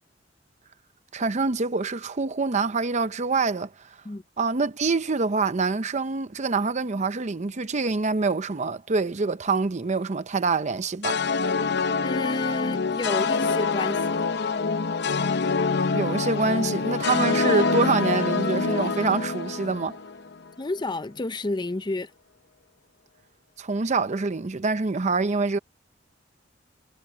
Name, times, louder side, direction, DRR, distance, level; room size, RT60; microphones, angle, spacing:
voice 1, 1.1-3.7 4.4-11.2 15.9-20.0 23.6-25.6, right 4 dB, 40° right, 0.6 m, -25 dB
sound 1, 11.0-20.3, left 4 dB, 60° left, 0.9 m, -25 dB
voice 2, 12.0-14.3 20.6-22.1, left 2 dB, 25° left, 0.6 m, -30 dB
head